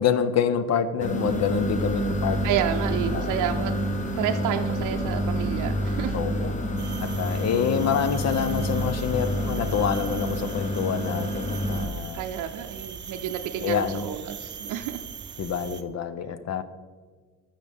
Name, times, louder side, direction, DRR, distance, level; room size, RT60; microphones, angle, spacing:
voice 1, 0.0-2.6 3.1-3.3 6.1-6.6 7.0-12.2 13.6-14.0 15.4-16.6, left 7 dB, 60° left, 13 dB, 0.8 m, -27 dB
sound 1, 1.0-11.8, equal, 25° left, 1.1 m, -28 dB
voice 2, 2.4-3.7 4.2-6.2 6.4-6.5 7.3-7.5 12.1-15.0, right 10 dB, 90° right, 4 dB, 0.6 m, -30 dB
sound 2, 6.8-15.8, right 8 dB, 40° right, 0.6 m, -40 dB
14.5 x 5.8 x 3.5 m, 1.5 s
cardioid pair, 90°, 30 cm